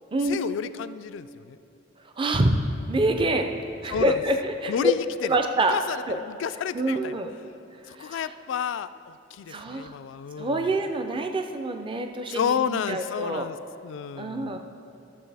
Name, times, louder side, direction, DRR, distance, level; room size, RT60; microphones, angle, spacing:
voice 1, 0.2-1.6 3.9-4.2 4.7-5.0 5.7-7.2 7.9-10.7 12.3-13.6 13.8-14.6, left 7 dB, 80° left, 13 dB, 0.3 m, -31 dB
voice 2, 2.2-2.6 2.9-3.5 3.8-4.9 5.2-5.8 6.1-6.2 6.7-7.3 8.0-8.2 9.5-9.9 10.4-13.5 14.2-14.6, right 1 dB, 25° right, 5 dB, 0.4 m, -26 dB
12.5 x 6.9 x 3.3 m, 2.8 s
head